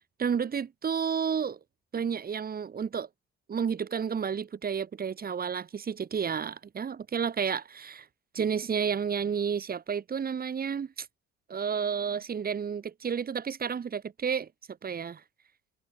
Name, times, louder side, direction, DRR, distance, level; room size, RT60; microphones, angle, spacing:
voice 1, 0.2-1.6 1.9-3.1 3.5-8.0 8.3-11.1 11.5-14.5 14.8-15.2, right 7 dB, 30° right, 0.9 m, -31 dB
hypercardioid pair, 65°, 30 cm